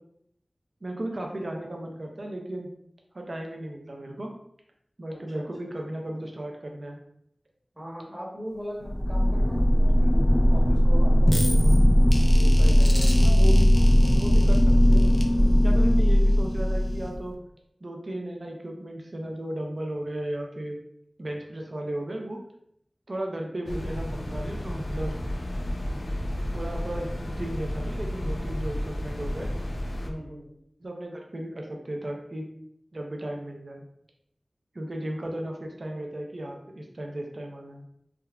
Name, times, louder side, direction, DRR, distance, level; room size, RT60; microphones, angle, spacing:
voice 1, 0.8-2.7 3.1-4.3 5.0-7.0 13.2-13.7 14.1-15.1 15.6-17.4 17.8-20.8 21.2-22.4 23.1-25.1 26.5-29.5 30.8-32.5 32.9-33.8 34.7-37.8, right 1 dB, 65° right, 1 dB, 0.4 m, -35 dB
voice 2, 5.1-5.7 7.7-11.7 12.4-13.3 30.0-30.5, equal, 40° right, -3 dB, 1.0 m, -40 dB
sound 1, 8.8-17.3, equal, 20° left, 0.4 m, -19 dB
sound 2, 23.7-30.1, left 1 dB, 85° left, 0.4 m, -32 dB
3.5 x 2.1 x 2.3 m, 0.72 s
wide cardioid pair, 45°, 0 cm